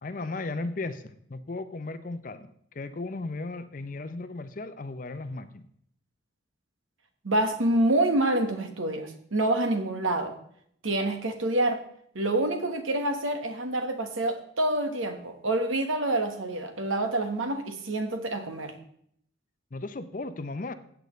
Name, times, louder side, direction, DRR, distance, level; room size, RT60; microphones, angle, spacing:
voice 1, 0.0-5.7 19.7-20.7, left 3 dB, 40° left, 11 dB, 0.6 m, -36 dB
voice 2, 7.2-10.4 10.8-11.8 12.1-18.7, right 1 dB, 90° right, 7 dB, 1.3 m, -27 dB
16.0 x 8.1 x 3.2 m, 0.67 s
head